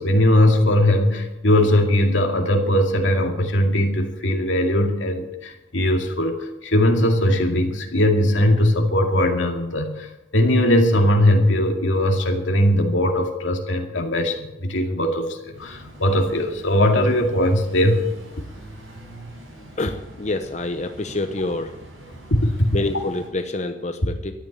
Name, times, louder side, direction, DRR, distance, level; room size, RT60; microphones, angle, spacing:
voice 1, 0.0-10.1 10.3-18.1 22.3-22.7, left 1 dB, 80° left, 2 dB, 2.2 m, -19 dB
sound 1, 15.5-23.3, right 1 dB, 90° right, 7.2 m, -43 dB
voice 2, 19.8-21.7 22.7-24.3, left 2 dB, 35° left, 7 dB, 0.8 m, -27 dB
13.5 x 8.9 x 8.7 m, 0.92 s
head